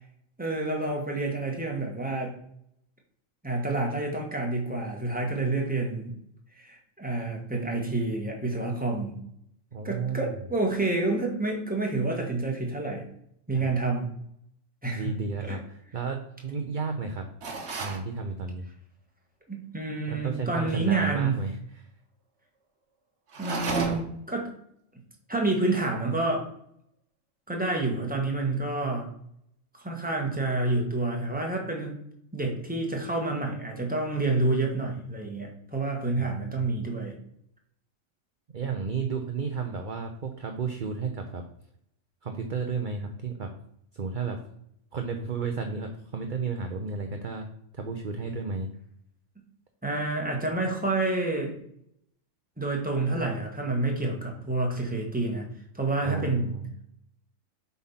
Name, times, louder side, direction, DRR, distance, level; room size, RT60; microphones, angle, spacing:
voice 1, 0.4-2.3 3.4-6.1 6.6-9.2 9.8-13.1 13.5-14.1 14.8-15.1 15.4-15.6 19.5-21.4 23.4-24.5 25.3-26.5 27.5-29.1 29.7-32.0 32.3-37.1 49.8-51.6 52.6-55.5 55.7-56.5, right 2 dB, 5° right, 0 dB, 1.7 m, -28 dB
voice 2, 9.7-10.3 13.5-13.7 14.9-17.2 17.8-18.7 20.1-21.9 36.2-36.7 38.5-41.4 42.2-43.5 43.9-44.4 44.9-47.5 47.7-48.7 56.0-56.7, right 4 dB, 45° right, 4 dB, 0.9 m, -33 dB
sound 1, 17.4-18.1 23.3-24.2, right 4 dB, 60° right, 1.5 m, -32 dB
7.6 x 4.3 x 5.7 m, 0.71 s
omnidirectional pair, 1.3 m